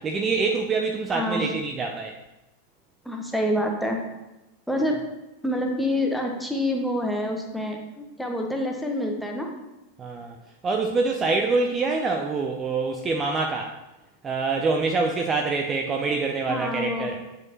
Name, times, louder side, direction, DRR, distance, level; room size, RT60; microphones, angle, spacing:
voice 1, 0.0-2.1 10.0-10.4 10.6-13.7 14.2-17.2, right 4 dB, 20° right, 2 dB, 0.6 m, -25 dB
voice 2, 1.1-1.5 3.0-4.0 4.7-5.0 5.4-9.5 16.5-17.1, left 1 dB, ahead, 1 dB, 1.1 m, -27 dB
9.4 x 5.0 x 3.1 m, 1.0 s
figure-of-eight pair, 90°, 0 cm